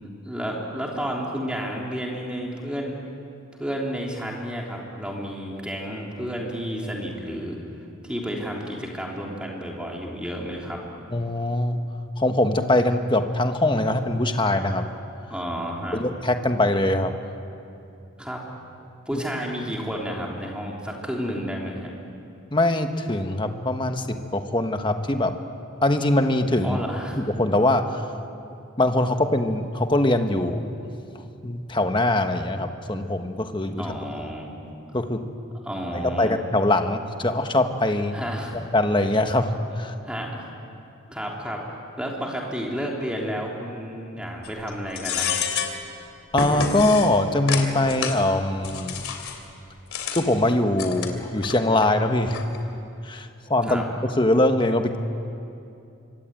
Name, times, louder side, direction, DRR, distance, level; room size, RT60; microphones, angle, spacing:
voice 1, 0.0-3.0 3.6-7.6 8.0-10.8 15.3-16.0 18.2-18.4 19.1-21.9 26.6-27.2 33.8-34.5 35.6-36.3 38.1-38.5 40.0-40.5 41.1-41.6 42.0-45.4 53.6-53.9, equal, 5° right, -2 dB, 3.6 m, -31 dB
voice 2, 11.1-11.8 12.2-14.8 15.9-17.1 22.5-25.4 25.8-26.8 27.1-28.0 28.8-30.9 31.4-33.9 34.2-34.3 34.9-35.2 35.9-38.2 38.5-39.9 46.3-49.0 50.1-52.4 53.0-55.0, left 1 dB, 25° left, 6 dB, 1.3 m, -22 dB
sound 1, 44.4-44.7 45.0-45.8 46.3-47.1 47.5-48.2 48.6-49.4 49.9-50.2 50.7-51.6 51.8-51.9 52.3-52.6, left 6 dB, 90° left, 3.1 m, -28 dB
25.5 x 24.0 x 9.2 m, 2.7 s
head